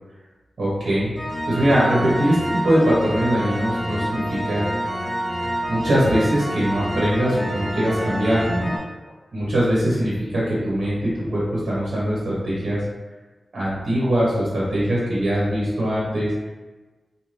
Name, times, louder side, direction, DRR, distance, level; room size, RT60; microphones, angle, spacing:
voice 1, 0.6-1.1 1.5-4.7 5.7-8.7 9.3-12.8 13.5-16.3, equal, 70° right, -7 dB, 0.9 m, -21 dB
sound 1, 1.2-8.8, equal, 15° left, 1.0 m, -28 dB
2.6 x 2.3 x 3.2 m, 1.2 s
wide cardioid pair, 145°, 0 cm